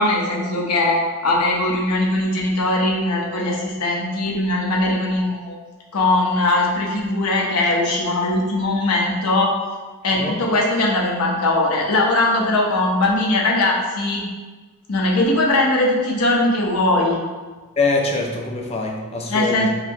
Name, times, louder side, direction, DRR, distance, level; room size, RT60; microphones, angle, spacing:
voice 1, 0.0-5.6 5.9-9.6 10.0-14.2 14.9-17.2 19.3-19.7, left 2 dB, 90° left, -2 dB, 0.7 m, -20 dB
voice 2, 17.8-19.7, left 3 dB, 25° left, 1 dB, 0.4 m, -23 dB
4.0 x 2.9 x 2.6 m, 1.3 s
head